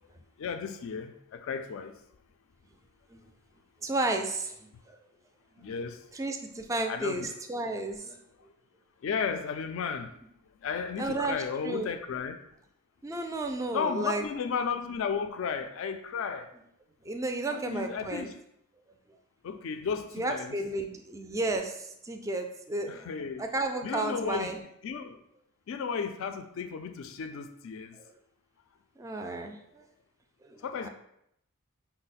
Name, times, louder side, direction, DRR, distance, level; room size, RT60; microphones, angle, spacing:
voice 1, 0.4-2.0 5.6-6.1 6.9-7.3 9.0-10.1 10.6-12.4 13.7-16.5 17.5-18.3 19.4-20.5 22.9-23.4 23.8-24.5 24.8-25.2 25.7-28.0 29.4-29.5 30.6-30.9, left 6 dB, 65° left, 8 dB, 0.3 m, -34 dB
voice 2, 3.8-5.0 5.6-5.7 6.1-8.2 11.0-11.9 13.0-14.2 17.0-18.3 19.1-19.2 20.1-23.1 23.4-24.6 27.9-28.1 29.0-29.9 30.4-30.9, right 2 dB, 15° right, 5 dB, 0.3 m, -33 dB
5.4 x 2.1 x 4.0 m, 0.76 s
head